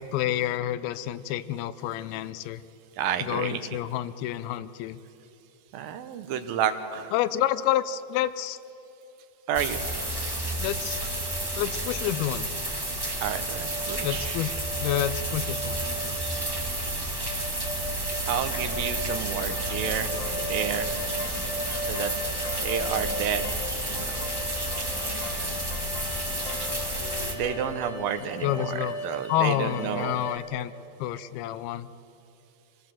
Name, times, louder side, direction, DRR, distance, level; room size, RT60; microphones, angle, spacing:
voice 1, 0.0-2.6 3.2-5.0 7.1-8.6 10.6-11.0 11.6-12.5 14.0-16.2 28.4-29.0 29.3-30.7 31.0-31.9, left 12 dB, 85° left, 15 dB, 2.5 m, -29 dB
voice 2, 3.0-3.6 5.7-7.1 9.5-9.8 13.2-14.6 18.3-20.1 20.4-20.9 21.8-22.1 22.6-23.5 23.9-24.3 24.9-25.7 27.3-30.2, right 9 dB, 75° right, 9 dB, 2.6 m, -31 dB
sound 1, 9.5-27.3, right 1 dB, 30° right, 0.4 m, -31 dB
sound 2, 10.4-30.4, equal, 25° left, 2.1 m, -38 dB
sound 3, 19.4-27.7, left 5 dB, 60° left, 2.5 m, -42 dB
26.5 x 17.5 x 7.5 m, 2.9 s
omnidirectional pair, 4.4 m